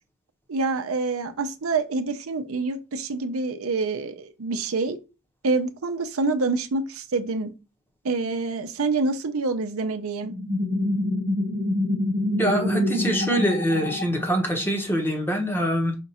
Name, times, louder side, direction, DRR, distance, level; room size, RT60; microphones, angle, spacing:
voice 1, 0.5-5.0 5.4-7.5 8.0-10.3, right 3 dB, 70° right, 0.6 m, -26 dB
sound 1, 10.2-14.7, left 1 dB, 55° left, 2.7 m, -26 dB
voice 2, 12.4-16.0, equal, 10° left, 0.9 m, -24 dB
5.2 x 2.4 x 4.1 m
head